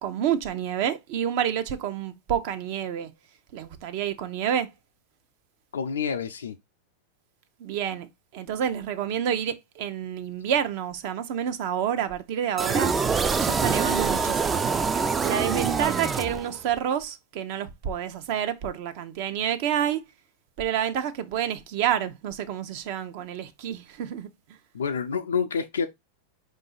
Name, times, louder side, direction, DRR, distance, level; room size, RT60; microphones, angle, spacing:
voice 1, 0.0-3.1 3.5-4.7 7.6-8.1 8.3-13.1 13.4-14.6 15.2-20.0 20.6-24.3, right 9 dB, 60° right, 0.7 m, -28 dB
voice 2, 5.7-6.6 24.7-25.9, left 6 dB, 90° left, 0.4 m, -28 dB
sound 1, 12.6-16.8, right 5 dB, 20° right, 0.3 m, -25 dB
4.9 x 2.5 x 3.9 m
hypercardioid pair, 110°, 0 cm